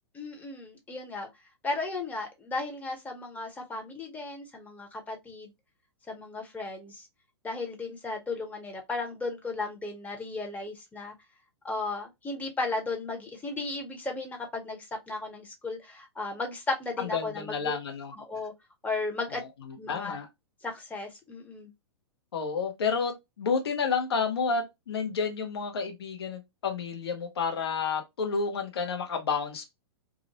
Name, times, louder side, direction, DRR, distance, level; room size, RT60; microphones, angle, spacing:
voice 1, 0.1-1.3 1.6-5.5 6.1-7.1 7.4-11.1 11.6-17.8 18.2-18.5 18.8-19.4 19.8-20.2 20.6-21.7, left 3 dB, 10° left, 0.8 m, -35 dB
voice 2, 17.0-18.1 19.3-20.3 22.3-23.1 23.4-29.7, left 5 dB, 65° left, 0.9 m, -30 dB
2.5 x 2.1 x 2.8 m
figure-of-eight pair, 105°, 14 cm